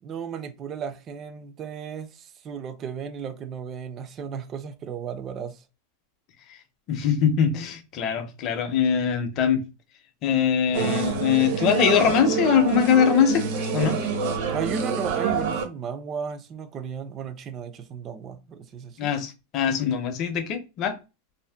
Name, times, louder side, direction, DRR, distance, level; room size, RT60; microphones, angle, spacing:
voice 1, 0.0-5.6 14.5-19.2, right 7 dB, 30° right, 0.4 m, -35 dB
voice 2, 6.9-9.6 10.2-13.4 13.7-14.0 19.0-21.0, left 7 dB, 35° left, 0.6 m, -22 dB
sound 1, 10.7-15.6, right 5 dB, 60° right, 0.7 m, -26 dB
2.6 x 2.1 x 3.3 m
supercardioid pair, 155°, 0 cm